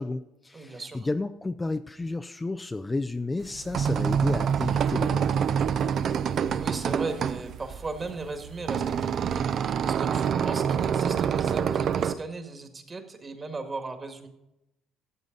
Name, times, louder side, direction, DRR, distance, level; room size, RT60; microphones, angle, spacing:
voice 1, 0.0-5.9, left 2 dB, 20° left, 7 dB, 0.5 m, -32 dB
voice 2, 0.5-1.0 6.6-9.4 9.8-14.3, right 3 dB, 30° right, 6 dB, 1.8 m, -37 dB
sound 1, 3.4-12.1, right 7 dB, 55° right, 0.6 m, -26 dB
13.5 x 7.5 x 3.9 m, 0.90 s
supercardioid pair, 85°, 0 cm